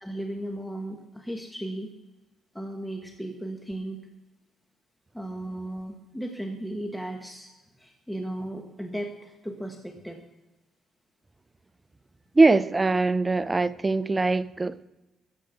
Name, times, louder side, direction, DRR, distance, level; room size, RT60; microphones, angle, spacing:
voice 1, 0.0-1.9 2.5-4.0 5.1-10.2, right 1 dB, 5° left, 3 dB, 1.4 m, -36 dB
voice 2, 12.3-14.8, right 3 dB, 20° right, 15 dB, 0.6 m, -22 dB
14.5 x 7.5 x 7.8 m, 1.1 s
cardioid pair, 90°, 0 cm